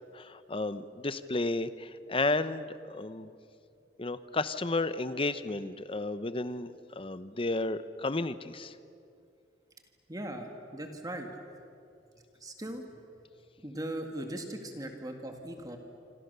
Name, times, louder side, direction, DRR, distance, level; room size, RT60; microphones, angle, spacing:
voice 1, 0.1-3.3 4.0-8.7, left 2 dB, 30° left, 13 dB, 0.9 m, -32 dB
voice 2, 10.1-11.3 12.4-12.9 13.6-15.8, right 1 dB, 20° right, 4 dB, 2.0 m, -39 dB
26.5 x 26.5 x 6.9 m, 2.5 s
head